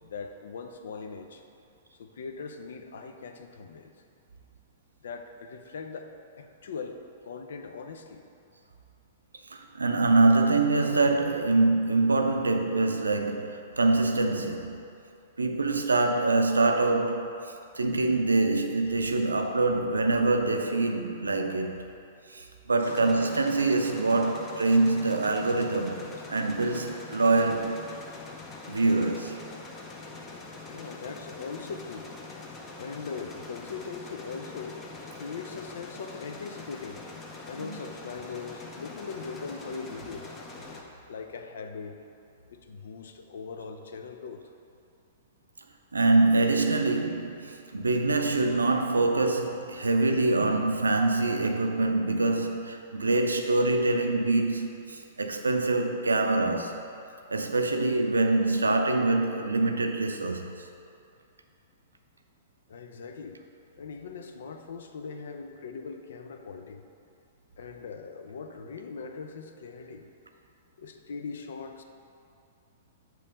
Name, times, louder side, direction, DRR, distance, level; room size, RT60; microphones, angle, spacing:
voice 1, 0.0-1.4 2.0-3.9 5.0-8.2 22.8-22.9 30.7-32.2 32.8-34.8 35.2-37.0 37.5-40.3 41.1-42.0 42.5-44.4 62.7-63.4 63.8-66.8 67.6-70.1 70.8-71.8, left 5 dB, 65° left, 6 dB, 0.5 m, -40 dB
voice 2, 9.5-14.8 15.4-17.3 17.7-21.8 22.3-27.8 28.7-29.4 37.5-37.7 45.9-56.8 57.3-60.7, right 2 dB, 85° right, 4 dB, 0.5 m, -25 dB
sound 1, 22.9-40.8, left 3 dB, 25° left, 0.7 m, -44 dB
6.8 x 3.1 x 5.1 m, 2.6 s
figure-of-eight pair, 110°, 0 cm